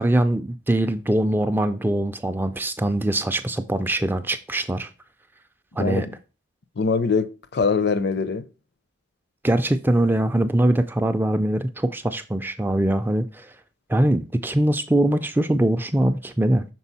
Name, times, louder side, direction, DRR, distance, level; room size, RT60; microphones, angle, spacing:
voice 1, 0.0-4.9 5.8-6.1 9.4-13.5 13.9-16.6, right 1 dB, 10° right, 0.3 m, -22 dB
voice 2, 5.8-6.2 6.8-8.5, left 5 dB, 55° left, 0.5 m, -23 dB
6.1 x 4.1 x 4.1 m
head